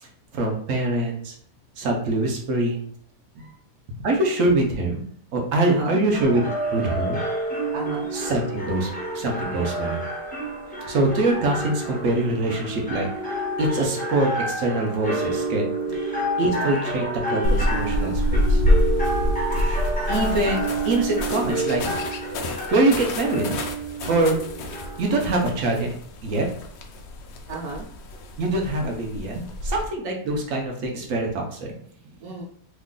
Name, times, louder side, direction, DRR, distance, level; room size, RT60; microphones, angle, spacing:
voice 1, 0.3-1.3 1.8-2.9 4.0-7.2 8.1-10.0 10.9-13.1 13.6-15.7 16.1-17.0 17.3-18.6 19.6-19.8 20.1-21.8 22.7-23.5 24.0-24.4 25.0-25.9 26.2-26.5 28.4-29.3 29.7-31.7, right 2 dB, 60° right, 1 dB, 1.0 m, -24 dB
voice 2, 5.6-6.0 7.7-8.1 21.9-22.0 27.5-27.9 29.4-29.6 32.0-32.4, right 3 dB, 80° right, -4 dB, 1.2 m, -34 dB
sound 1, 6.1-25.7, right 1 dB, 10° left, 0.4 m, -29 dB
sound 2, 17.4-29.9, left 1 dB, 80° left, 0.6 m, -27 dB
3.1 x 2.4 x 3.7 m, 0.63 s
omnidirectional pair, 1.7 m